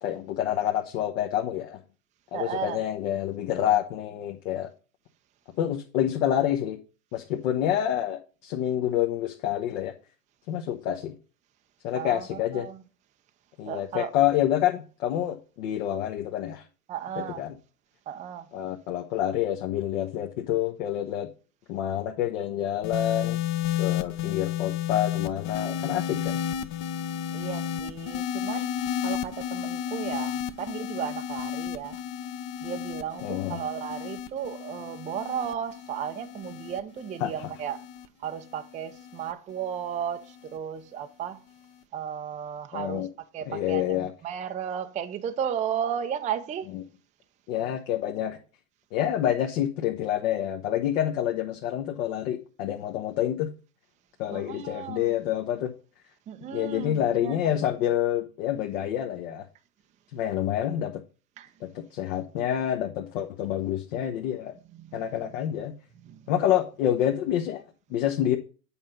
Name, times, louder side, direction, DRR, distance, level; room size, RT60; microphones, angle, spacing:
voice 1, 0.0-1.8 2.3-4.7 5.6-6.8 7.1-9.9 10.5-11.1 11.8-12.7 13.6-16.6 17.4-17.5 18.5-21.3 21.7-23.4 23.8-26.4 33.2-33.6 37.2-37.3 42.7-43.1 43.5-44.1 46.7-46.8 47.5-48.4 48.9-53.5 54.2-55.7 56.5-59.5 60.1-61.0 61.6-64.5 64.9-65.7 66.3-67.6 67.9-68.4, left 11 dB, 60° left, 1.3 m, -27 dB
voice 2, 2.3-2.8 11.9-12.8 13.7-14.1 16.9-17.4 18.1-18.5 27.3-32.0 32.6-37.9 38.2-41.4 41.9-46.7 54.3-55.2 56.3-57.4 61.4-61.5 64.7-65.0 66.0-66.3, right 9 dB, 15° right, 0.5 m, -34 dB
sound 1, 22.8-39.3 40.2-40.6, left 10 dB, 45° left, 1.0 m, -32 dB
8.8 x 4.3 x 5.2 m
hypercardioid pair, 110°, 45 cm